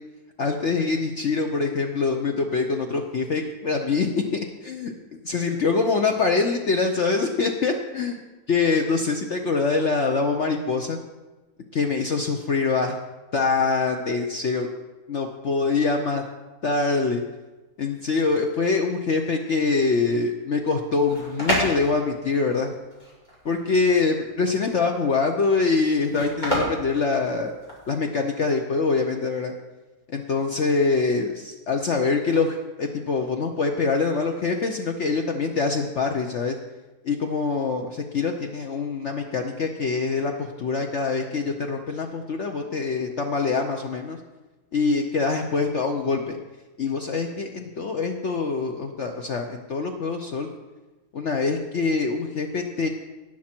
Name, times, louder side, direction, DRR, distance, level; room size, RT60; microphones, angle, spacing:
voice 1, 0.4-4.9 5.3-8.1 8.5-11.0 11.7-13.0 13.3-14.7 15.1-16.2 16.6-17.2 17.8-22.7 23.4-27.5 27.9-29.5 30.1-36.6 37.0-44.2 44.7-46.4 46.8-50.5 51.1-52.9, left 4 dB, 70° left, 3 dB, 0.6 m, -24 dB
sound 1, 20.8-27.9, equal, 20° left, 3.1 m, -30 dB
17.0 x 6.2 x 4.4 m, 1.2 s
omnidirectional pair, 2.1 m